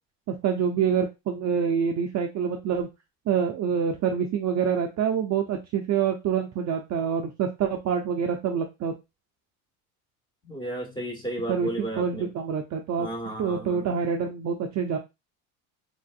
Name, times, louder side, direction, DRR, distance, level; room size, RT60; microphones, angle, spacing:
voice 1, 0.3-2.9 3.3-8.9 11.5-13.1 13.4-15.0, right 7 dB, 35° right, 2 dB, 0.5 m, -26 dB
voice 2, 10.4-12.3 13.0-13.9, right 1 dB, 10° left, 1 dB, 1.4 m, -33 dB
3.6 x 2.5 x 2.4 m, 0.24 s
supercardioid pair, 95°, 47 cm